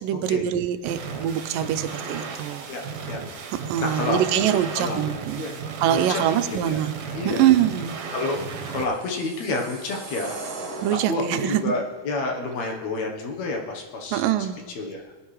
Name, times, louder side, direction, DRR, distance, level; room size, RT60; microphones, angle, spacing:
voice 1, 0.0-2.7 3.5-5.5 5.8-6.9 7.3-8.0 10.8-11.7 14.1-14.6, right 11 dB, 90° right, 10 dB, 2.3 m, -24 dB
sound 1, 0.8-8.8, right 5 dB, 65° right, 2.2 m, -35 dB
voice 2, 2.7-3.2 3.8-4.5 4.7-5.0 5.3-5.6 5.9-6.8 7.1-7.5 8.1-8.4 8.7-10.5 10.9-14.5 14.8-15.1, left 2 dB, 65° left, 1 dB, 2.2 m, -29 dB
sound 2, 8.5-11.7, right 3 dB, 45° right, 2.1 m, -39 dB
19.0 x 10.0 x 3.2 m, 1.3 s
omnidirectional pair, 3.9 m